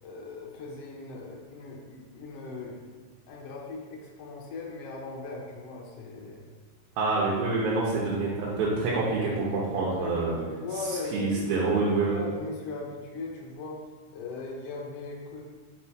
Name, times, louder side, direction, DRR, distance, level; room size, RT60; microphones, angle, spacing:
voice 1, 0.0-2.8 3.3-6.4 10.0-13.8 14.1-15.4, left 3 dB, 70° left, -1 dB, 1.6 m, -39 dB
voice 2, 7.0-10.4 10.9-12.2, right 3 dB, 90° right, -6 dB, 2.8 m, -27 dB
5.4 x 4.3 x 4.8 m, 1.4 s
omnidirectional pair, 4.0 m